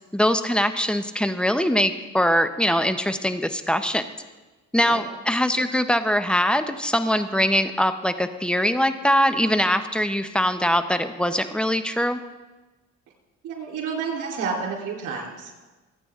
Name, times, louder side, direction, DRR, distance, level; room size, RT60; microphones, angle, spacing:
voice 1, 0.1-4.0 4.7-12.2, equal, 5° left, 9 dB, 0.9 m, -22 dB
voice 2, 13.4-15.5, right 5 dB, 85° right, 0 dB, 3.9 m, -30 dB
25.5 x 8.9 x 3.8 m, 1.2 s
cardioid pair, 90°, 30 cm